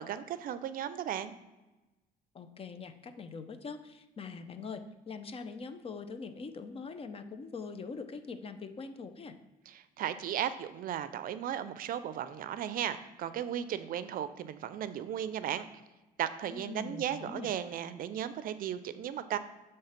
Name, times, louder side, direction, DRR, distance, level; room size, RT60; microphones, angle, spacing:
voice 1, 0.0-1.3 9.7-15.7 16.2-19.4, right 10 dB, 55° right, 13 dB, 0.5 m, -36 dB
voice 2, 2.3-9.4 16.5-17.5, left 4 dB, 35° left, 9 dB, 0.7 m, -43 dB
7.9 x 3.2 x 5.8 m, 1.1 s
cardioid pair, 110°, 17 cm